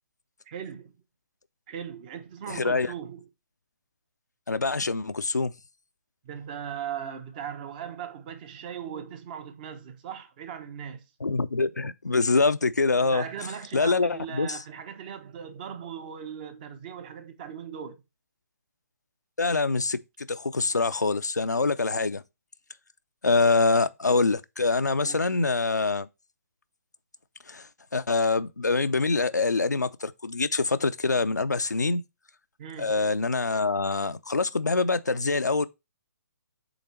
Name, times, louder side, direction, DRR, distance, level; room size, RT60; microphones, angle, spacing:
voice 1, 0.5-0.9 1.7-3.3 6.2-11.0 13.0-18.0 25.0-25.2 32.6-33.0, right 8 dB, 30° right, 0.9 m, -38 dB
voice 2, 2.5-2.9 4.5-5.5 11.2-13.2 13.7-14.6 19.4-20.0 20.3-22.2 23.2-26.1 27.5-27.7 27.9-32.0 32.8-35.7, left 3 dB, 80° left, 0.5 m, -25 dB
7.8 x 3.3 x 4.3 m
figure-of-eight pair, 135°, 9 cm